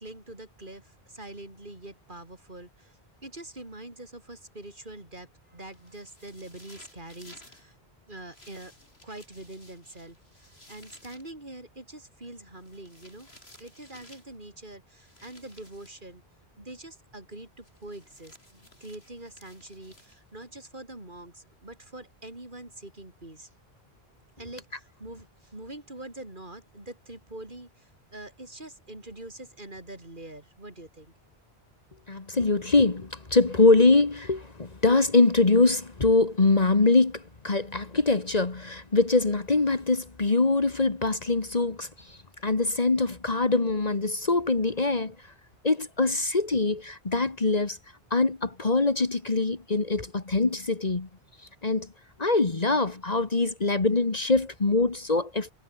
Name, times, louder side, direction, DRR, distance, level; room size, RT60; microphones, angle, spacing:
voice 1, 0.0-3.0 3.2-7.8 8.1-8.7 9.0-13.3 13.6-16.2 16.6-23.5 24.4-31.1, right 1 dB, 55° right, 4.7 m, -44 dB
sound 1, 5.7-7.6 8.3-11.3 12.6-14.4 15.0-16.1 17.6-20.4, left 1 dB, 90° left, 7.2 m, -55 dB
voice 2, 32.1-45.1 45.6-47.8 48.1-51.1 51.6-51.9 52.2-55.5, left 3 dB, 40° left, 1.6 m, -23 dB
omnidirectional pair, 1.0 m